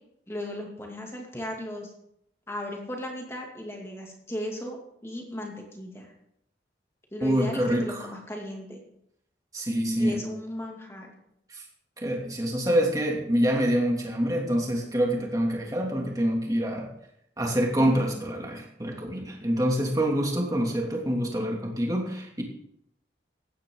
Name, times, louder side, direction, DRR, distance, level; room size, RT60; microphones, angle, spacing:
voice 1, 0.3-1.9 2.5-6.1 7.1-8.8 10.0-11.1, left 1 dB, 15° left, 0 dB, 2.6 m, -36 dB
voice 2, 7.2-8.0 9.5-10.2 11.5-11.6 12.0-16.9 17.4-22.4, equal, 20° right, -1 dB, 2.7 m, -26 dB
16.0 x 11.0 x 3.9 m, 0.76 s
head